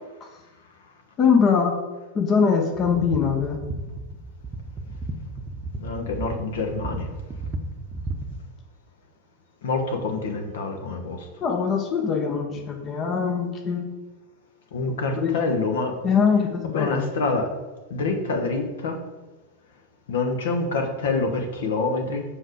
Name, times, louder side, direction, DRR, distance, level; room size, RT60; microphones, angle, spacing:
voice 1, 1.2-1.8 2.1-3.6 11.4-13.9 14.9-15.4 16.0-17.1, left 6 dB, 30° left, 3 dB, 0.9 m, -22 dB
sound 1, 2.7-8.4, right 2 dB, 20° right, 0.8 m, -34 dB
voice 2, 5.8-7.1 9.6-11.2 14.7-15.9 16.7-17.5 17.9-19.0 20.1-22.2, left 3 dB, 60° left, 4 dB, 1.2 m, -26 dB
7.8 x 5.0 x 4.9 m, 1.2 s
figure-of-eight pair, 90°, 0 cm